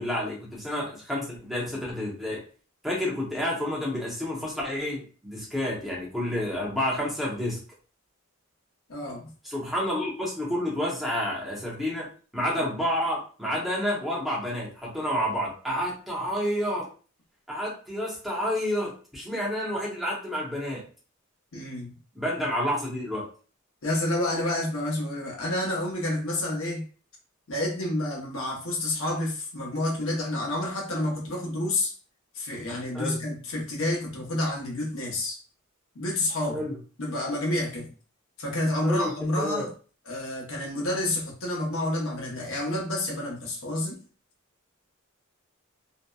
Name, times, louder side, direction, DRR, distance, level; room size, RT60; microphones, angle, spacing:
voice 1, 0.0-2.4 2.8-7.6 9.4-12.1 12.3-16.9 17.5-20.8 22.1-23.3 32.9-33.2 36.5-36.7 38.8-39.1 39.4-39.7, equal, ahead, -5 dB, 0.8 m, -29 dB
voice 2, 8.9-9.3 12.6-12.7 21.5-22.0 23.8-26.9 27.5-31.9 32.3-35.4 35.9-36.6 37.0-37.9 38.4-39.7 40.1-44.0, left 1 dB, 70° left, -2 dB, 0.9 m, -29 dB
2.7 x 2.1 x 2.3 m, 0.38 s
head